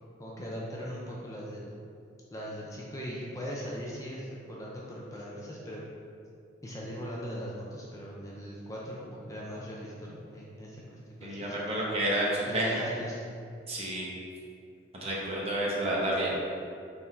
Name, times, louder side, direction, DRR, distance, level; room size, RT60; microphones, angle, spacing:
voice 1, 0.2-1.7 2.3-5.8 6.6-11.8 12.5-13.3, equal, 15° left, -5 dB, 0.6 m, -40 dB
voice 2, 11.2-12.8 13.7-14.1 14.9-16.3, right 1 dB, 30° right, -5 dB, 1.2 m, -30 dB
6.0 x 4.0 x 4.5 m, 2.4 s
head